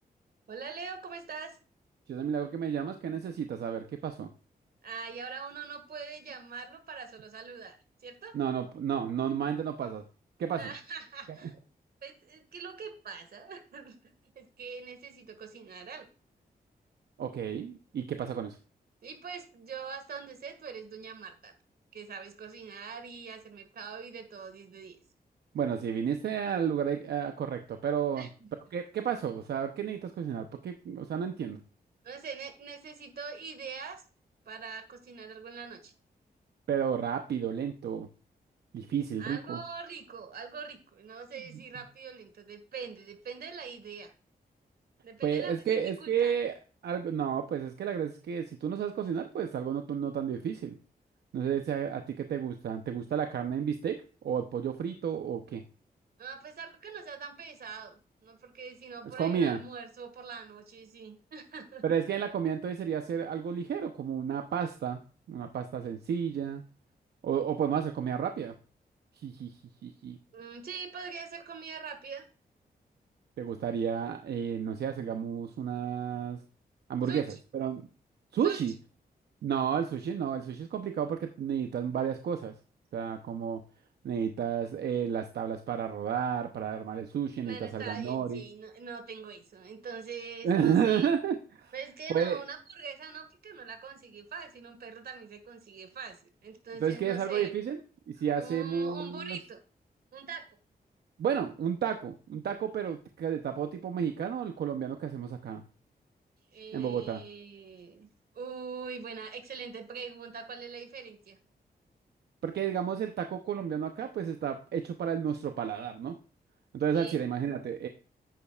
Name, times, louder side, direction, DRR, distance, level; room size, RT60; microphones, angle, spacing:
voice 1, 0.5-1.6 4.8-8.4 10.6-11.7 12.0-14.0 14.4-16.1 19.0-21.5 21.9-25.0 28.2-28.5 32.0-34.0 34.5-35.9 39.2-44.1 45.0-46.3 56.2-61.8 70.3-72.3 77.1-77.4 78.4-78.6 87.4-91.1 91.7-97.5 98.4-99.6 100.1-100.5 106.5-108.1 108.4-111.4 116.9-117.2, right 5 dB, 70° right, 8 dB, 1.8 m, -43 dB
voice 2, 2.1-4.3 8.3-10.0 10.4-10.7 17.2-18.6 25.5-28.3 28.7-31.6 36.7-38.1 38.7-39.6 45.2-46.5 46.8-50.8 51.3-55.6 59.2-59.6 61.8-65.0 65.3-66.6 67.2-68.5 69.2-69.6 69.8-70.2 73.4-76.4 76.9-77.9 78.3-78.7 79.4-82.5 82.9-83.6 84.0-88.4 90.4-91.7 92.1-92.4 96.8-97.8 98.1-99.4 101.2-105.6 106.7-107.2 112.4-116.2 116.7-117.9, right 8 dB, 90° right, 7 dB, 0.8 m, -31 dB
10.5 x 8.7 x 2.4 m, 0.37 s
wide cardioid pair, 110°, 16 cm